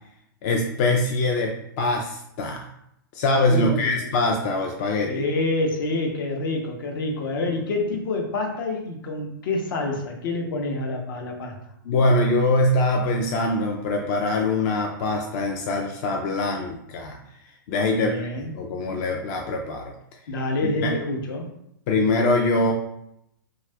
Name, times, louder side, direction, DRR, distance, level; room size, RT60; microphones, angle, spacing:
voice 1, 0.4-2.6 3.1-5.2 11.9-17.2 17.7-18.3 18.5-19.9 20.6-20.9 21.9-22.7, left 2 dB, 40° left, 1 dB, 0.4 m, -23 dB
voice 2, 3.5-4.0 5.1-11.5 18.0-18.5 20.3-21.5, left 2 dB, 70° left, 2 dB, 0.7 m, -27 dB
2.7 x 2.3 x 3.2 m, 0.77 s
hypercardioid pair, 130°, 12 cm